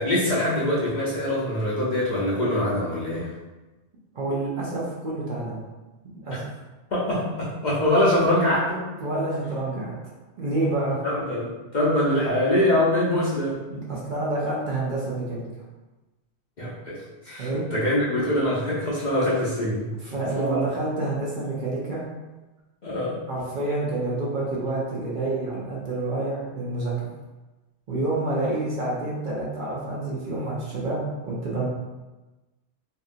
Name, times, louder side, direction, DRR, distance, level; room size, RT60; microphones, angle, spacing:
voice 1, 0.0-3.3 6.3-6.4 6.9-8.8 11.0-13.6 16.6-19.9 20.4-20.6 22.8-23.2, left 1 dB, 50° left, -7 dB, 0.6 m, -24 dB
voice 2, 4.1-5.6 6.2-6.5 9.0-9.9 10.4-11.0 13.7-15.5 17.4-17.6 20.0-22.0 23.3-27.1 27.9-31.7, right 2 dB, 55° right, -5 dB, 0.7 m, -28 dB
2.7 x 2.6 x 2.4 m, 1.1 s
omnidirectional pair, 1.1 m